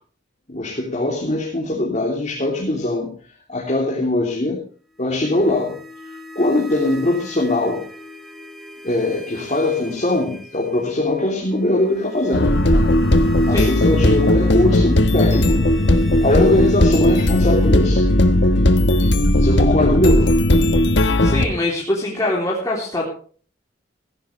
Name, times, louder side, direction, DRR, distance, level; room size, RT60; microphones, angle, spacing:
voice 1, 0.5-3.1 3.5-4.6 5.0-5.8 6.3-7.8 8.8-12.9 13.4-15.7 16.2-18.0 19.4-20.3, left 2 dB, 40° left, -2 dB, 3.1 m, -21 dB
sound 1, 5.0-19.9, left 2 dB, ahead, 2.6 m, -39 dB
sound 2, 12.3-21.5, left 1 dB, 70° left, 1.4 m, -16 dB
voice 2, 21.2-23.0, left 1 dB, 20° left, -4 dB, 3.3 m, -23 dB
15.5 x 15.5 x 3.3 m, 0.43 s
head